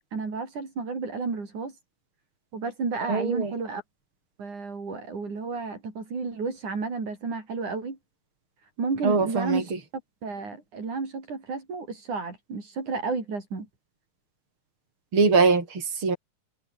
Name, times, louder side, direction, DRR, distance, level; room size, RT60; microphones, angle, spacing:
voice 1, 0.1-1.8 2.5-3.8 4.4-8.0 8.8-9.7 10.2-13.7, right 4 dB, 65° right, 6.9 m, -32 dB
voice 2, 3.1-3.5 9.0-9.6 15.1-16.2, right 4 dB, 40° right, 6.1 m, -22 dB
omnidirectional pair, 3.7 m